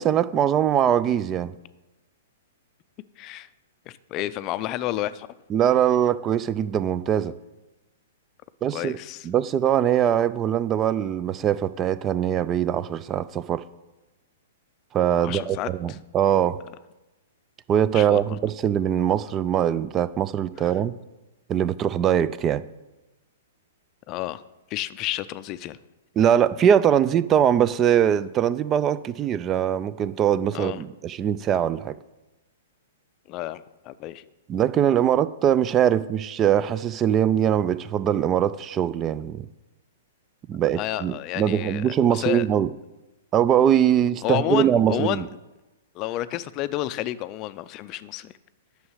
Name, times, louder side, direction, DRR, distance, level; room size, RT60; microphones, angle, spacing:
voice 1, 0.0-1.5 5.5-7.3 8.6-9.0 9.2-13.6 14.9-16.6 17.7-20.9 21.5-22.6 26.2-32.0 34.5-39.5 40.5-42.7 43.3-45.2, right 9 dB, 25° right, 17 dB, 0.4 m, -22 dB
voice 2, 3.2-3.5 3.9-5.3 8.7-9.3 15.2-16.0 17.9-18.2 20.6-20.7 24.1-24.4 24.7-25.8 30.5-30.8 33.3-34.2 40.8-42.5 44.2-45.3 45.9-48.3, left 14 dB, 35° left, 14 dB, 0.4 m, -30 dB
9.6 x 6.4 x 6.4 m, 1.1 s
hypercardioid pair, 120°, 0 cm